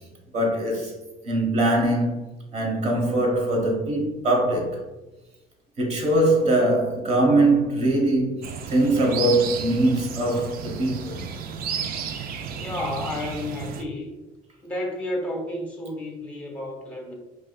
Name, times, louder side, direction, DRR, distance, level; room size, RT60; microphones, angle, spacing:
voice 1, 0.3-0.9 1.2-2.2 2.5-4.8 5.8-11.2, right 1 dB, 40° right, 1.1 m, -22 dB
sound 1, 8.4-13.8, right 6 dB, 60° right, 0.4 m, -33 dB
voice 2, 12.5-14.1 14.6-17.1, left 1 dB, 10° left, 0.8 m, -31 dB
4.6 x 2.6 x 2.3 m
cardioid pair, 110°, 17 cm